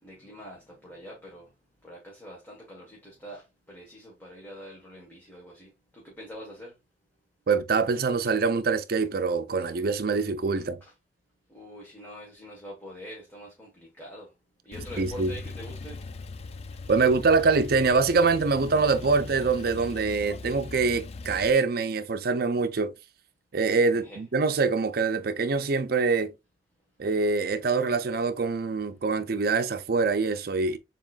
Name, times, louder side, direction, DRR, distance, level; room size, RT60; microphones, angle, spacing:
voice 1, 0.0-1.5 1.8-6.7 10.5-10.9 11.5-14.3 14.6-16.0 23.9-24.2, equal, 10° left, 1.4 m, -45 dB
voice 2, 7.5-10.8 15.0-15.3 16.9-22.9 23.5-26.3 27.0-30.8, right 4 dB, 60° right, 0.6 m, -24 dB
Male speech man speaking / Car / Idling, 14.7-21.5, left 3 dB, 35° left, 0.4 m, -40 dB
7.0 x 3.0 x 2.4 m
head